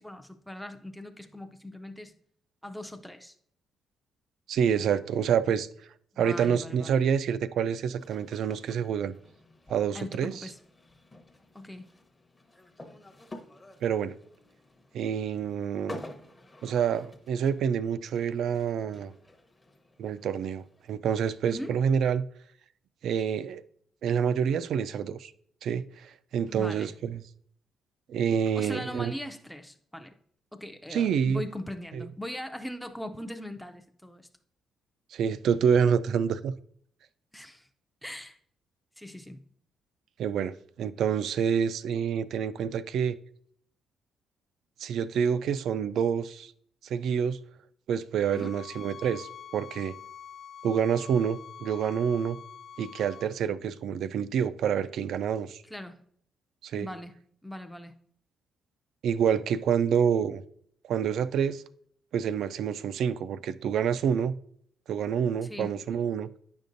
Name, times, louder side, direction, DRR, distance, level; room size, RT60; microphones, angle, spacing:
voice 1, 0.0-2.2 2.6-3.3 6.1-7.0 9.9-10.6 11.5-11.9 21.4-21.7 26.5-26.9 28.5-30.2 30.5-34.3 37.3-37.7 38.0-38.4 39.0-39.4 48.3-48.6 55.6-56.0 56.7-58.0 65.5-65.7, left 1 dB, ahead, 0.5 m, -40 dB
voice 2, 4.5-5.7 6.2-9.1 9.7-10.3 13.8-14.1 14.9-16.0 16.6-19.1 20.0-22.3 23.0-23.6 24.0-25.3 25.6-27.2 28.1-29.1 30.9-31.4 31.9-32.1 35.1-36.5 40.2-40.5 40.8-43.2 44.8-46.5 46.8-47.4 47.9-49.9 50.6-52.4 52.8-55.6 56.6-56.9 59.0-60.4 60.8-61.6 62.1-64.4 64.9-66.3, right 7 dB, 75° right, 0.3 m, -27 dB
sound 1, 8.0-20.9, left 1 dB, 20° left, 0.8 m, -50 dB
sound 2, 48.3-53.3, left 8 dB, 70° left, 0.3 m, -46 dB
9.1 x 5.2 x 2.6 m
cardioid pair, 90°, 0 cm